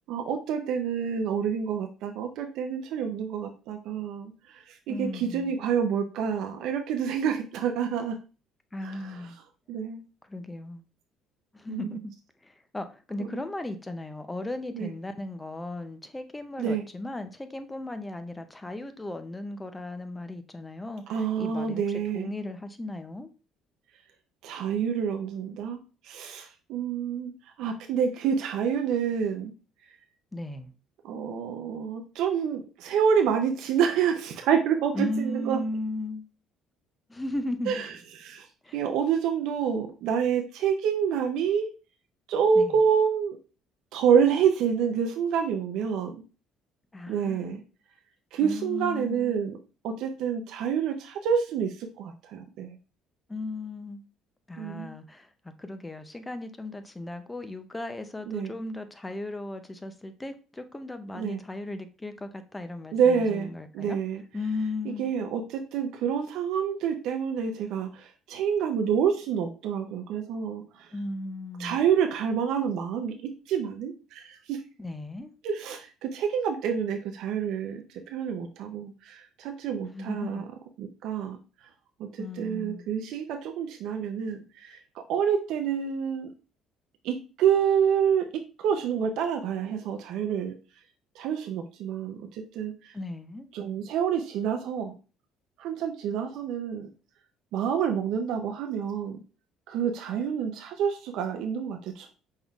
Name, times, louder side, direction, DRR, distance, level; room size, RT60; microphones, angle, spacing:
voice 1, 0.1-8.2 8.8-8.9 9.7-10.0 11.7-11.9 14.7-14.9 16.6-16.8 21.1-22.3 24.4-25.8 26.0-27.3 27.6-29.5 31.0-35.6 37.7-37.9 38.2-38.5 38.7-41.7 42.3-43.4 43.9-46.2 47.1-47.6 48.3-49.6 49.8-52.8 54.6-54.9 58.3-58.5 61.1-61.4 62.9-64.2 64.9-70.9 71.6-74.6 75.4-80.4 80.8-81.4 82.0-84.8 85.1-86.3 87.0-88.3 88.6-90.5 91.2-92.9 93.5-95.0 95.6-96.9 97.5-99.2 99.7-102.1, right 7 dB, 70° right, 0.5 m, -28 dB
voice 2, 4.9-5.5 8.7-9.4 10.3-10.8 11.5-12.0 12.4-21.9 22.1-23.3 30.3-30.7 34.9-36.3 37.1-37.8 38.6-38.8 42.5-42.8 46.9-47.6 48.4-49.3 53.3-54.0 54.5-64.0 64.3-65.1 70.9-71.8 74.8-75.3 79.8-80.4 82.2-82.9 92.9-93.5, left 2 dB, 10° left, 0.4 m, -36 dB
5.4 x 3.5 x 2.3 m
cardioid pair, 145°, 0 cm